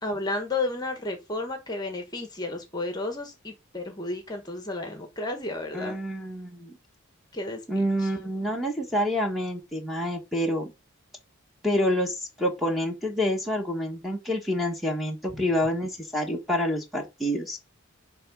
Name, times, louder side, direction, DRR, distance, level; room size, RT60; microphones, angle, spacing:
voice 1, 0.0-6.0 7.3-8.1 15.3-15.4, left 2 dB, 20° left, 1.5 m, -32 dB
voice 2, 5.7-6.7 7.7-10.7 11.6-17.6, equal, ahead, 1.6 m, -27 dB
11.0 x 3.7 x 5.4 m
head